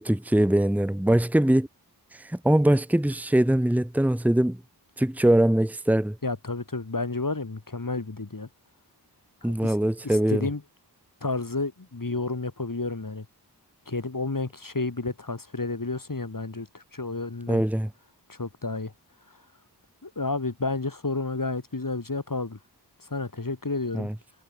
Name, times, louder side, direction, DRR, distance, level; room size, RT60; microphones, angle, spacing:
voice 1, 0.0-1.7 2.2-4.6 5.0-6.2 9.4-10.5 17.5-17.9 23.9-24.1, right 1 dB, 5° right, 1.0 m, -22 dB
voice 2, 6.2-8.5 9.4-9.8 10.0-10.6 11.2-13.3 13.9-17.6 18.3-18.9 20.0-22.6 23.0-24.1, left 3 dB, 50° left, 4.7 m, -31 dB
wide cardioid pair, 50°, 41 cm